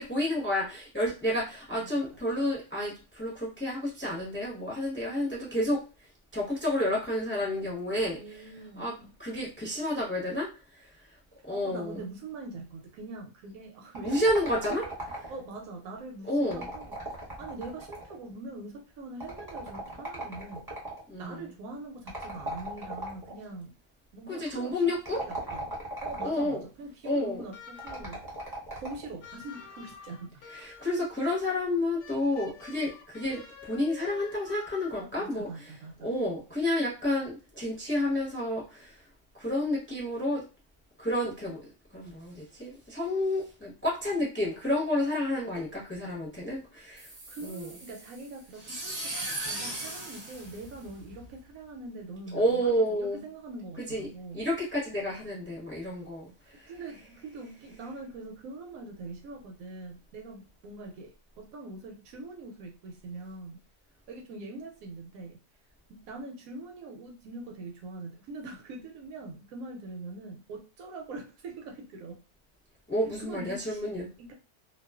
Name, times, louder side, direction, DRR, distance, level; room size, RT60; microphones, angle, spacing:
voice 1, 0.0-5.8 6.3-8.5 8.8-8.9 9.2-10.5 10.7-10.9 11.4-12.0 14.0-14.8 16.3-16.7 21.1-21.5 24.3-25.2 26.2-26.6 27.0-27.4 30.5-35.6 36.0-39.0 39.4-40.4 41.0-41.6 41.9-47.1 47.4-47.7 52.3-53.2 53.8-54.1 54.3-56.7 72.9-74.1, left 1 dB, 10° left, -4 dB, 0.7 m, -30 dB
voice 2, 8.2-9.1 11.5-14.3 14.8-14.9 15.3-16.9 17.4-20.7 21.2-23.7 24.1-25.6 26.0-28.2 28.7-30.4 35.0-36.1 47.3-54.4 56.5-63.6 64.1-65.4 65.9-72.2 73.2-74.3, right 2 dB, 70° right, 2 dB, 0.9 m, -43 dB
sound 1, 13.9-15.6 16.4-18.2 19.2-21.0 22.1-23.4 24.9-26.5 27.8-29.1, right 1 dB, 15° right, 0.9 m, -38 dB
sound 2, 27.5-28.2 29.2-31.0 32.0-35.2, left 6 dB, 60° left, 0.9 m, -48 dB
sound 3, 47.0-51.3, right 1 dB, 50° right, 0.7 m, -38 dB
2.3 x 2.3 x 2.3 m, 0.33 s
omnidirectional pair, 1.6 m